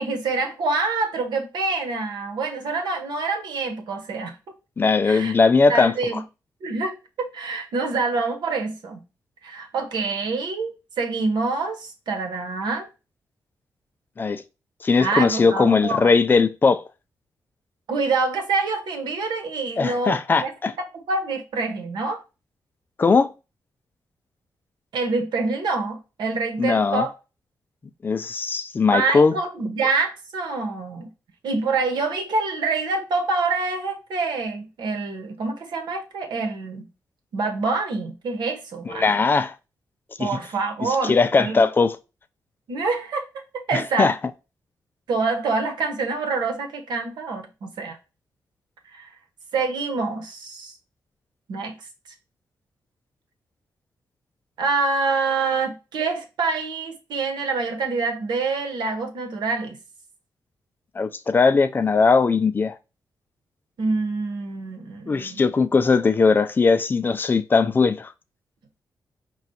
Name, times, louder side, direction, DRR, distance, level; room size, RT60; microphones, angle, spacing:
voice 1, 0.0-4.4 5.0-5.3 5.7-6.2 6.6-9.0 9.4-12.9 15.0-16.1 17.9-20.5 20.9-22.2 24.9-27.1 28.9-31.1 31.4-36.9 37.3-39.1 40.2-41.7 42.7-43.3 43.7-44.1 45.1-48.0 48.9-49.1 49.5-50.7 51.5-51.7 54.6-59.8 63.8-65.4, right 3 dB, 90° right, 1.1 m, -26 dB
voice 2, 4.8-5.9 14.2-14.4 14.8-16.8 19.8-20.7 23.0-23.3 26.6-27.1 28.0-29.4 38.9-39.5 40.2-40.4 40.8-42.0 43.7-44.1 61.0-62.7 65.1-68.1, left 4 dB, 30° left, 0.4 m, -19 dB
5.0 x 2.3 x 4.2 m
wide cardioid pair, 135°, 7 cm